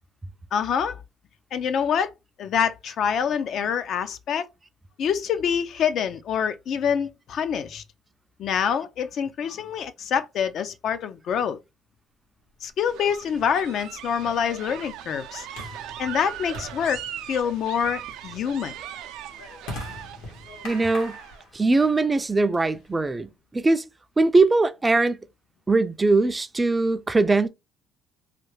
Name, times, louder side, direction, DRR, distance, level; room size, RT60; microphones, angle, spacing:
voice 1, 0.5-1.0 1.5-2.1 2.4-4.5 5.0-7.8 8.4-11.6 12.6-15.5 16.0-17.0 17.3-18.7, left 7 dB, 60° left, 0.5 m, -26 dB
sound 1, 12.8-21.4, right 10 dB, 85° right, 0.5 m, -39 dB
sound 2, 12.9-23.2, left 2 dB, 85° left, 1.6 m, -43 dB
voice 2, 20.6-21.2 21.5-23.3 23.5-23.8 24.2-25.2 25.7-27.5, right 3 dB, 20° right, 0.4 m, -21 dB
3.2 x 2.3 x 3.2 m
cardioid pair, 100°, 0 cm